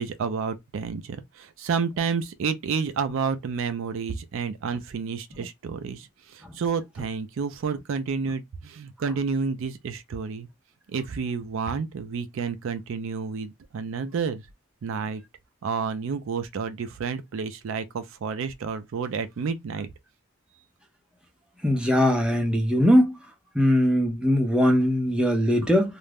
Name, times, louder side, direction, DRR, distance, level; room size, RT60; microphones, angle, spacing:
voice 1, 0.0-10.5 10.9-14.4 14.8-15.2 15.6-19.9, right 5 dB, 65° right, 0.4 m, -30 dB
voice 2, 21.6-23.2 23.5-26.0, equal, 5° right, 0.6 m, -21 dB
2.4 x 2.1 x 3.3 m
head